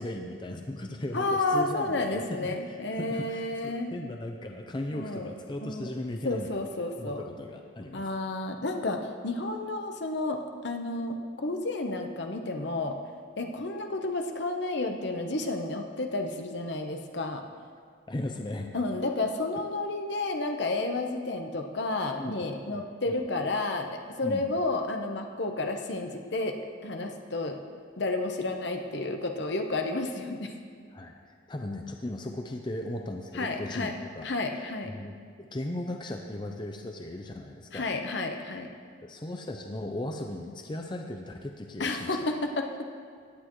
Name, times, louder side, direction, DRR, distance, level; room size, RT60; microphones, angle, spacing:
voice 1, 0.0-6.5 6.9-8.0 13.5-13.6 18.1-18.7 22.2-22.3 22.7-22.8 23.1-23.2 24.2-24.5 30.9-34.3 34.9-37.9 39.0-42.2, left 1 dB, 25° left, 3 dB, 0.6 m, -37 dB
voice 2, 1.1-3.9 4.9-5.3 5.6-5.9 6.2-7.2 7.9-13.0 13.4-17.4 18.7-26.6 26.8-27.6 28.0-30.5 33.3-33.9 34.2-34.9 37.7-38.7 41.8-42.9, left 2 dB, 65° left, 4 dB, 1.0 m, -31 dB
16.5 x 10.0 x 3.1 m, 2.1 s
head